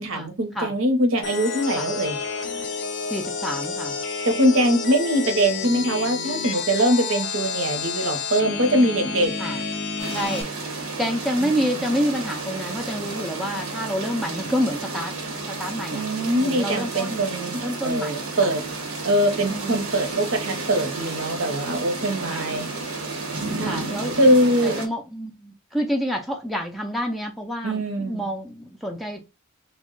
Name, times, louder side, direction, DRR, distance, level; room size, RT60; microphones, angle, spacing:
voice 1, 0.0-2.2 4.2-9.3 11.4-11.5 15.9-18.6 19.0-22.7 23.6-23.8 24.2-24.8 27.6-28.2, right 1 dB, 65° right, 0.8 m, -22 dB
sound 1, 1.2-10.4, left 5 dB, 60° left, 0.5 m, -30 dB
voice 2, 3.0-4.0 9.4-9.6 10.1-15.2 15.5-16.1 16.4-17.3 17.6-18.5 19.5-19.7 22.3-22.5 23.6-24.2 24.6-29.2, equal, ahead, 0.4 m, -28 dB
sound 2, 10.0-24.9, right 3 dB, 90° right, 1.0 m, -32 dB
3.4 x 2.1 x 3.7 m
head